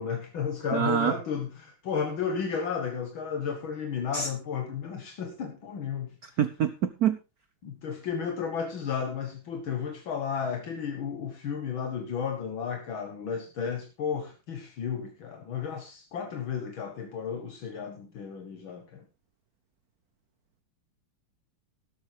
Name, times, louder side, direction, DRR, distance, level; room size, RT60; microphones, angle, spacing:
voice 1, 0.0-6.4 7.6-19.1, left 6 dB, 70° left, 5 dB, 2.2 m, -33 dB
voice 2, 0.7-1.1 4.1-4.3 6.4-7.2, right 9 dB, 60° right, 12 dB, 1.1 m, -25 dB
13.0 x 12.5 x 3.4 m, 0.28 s
omnidirectional pair, 2.3 m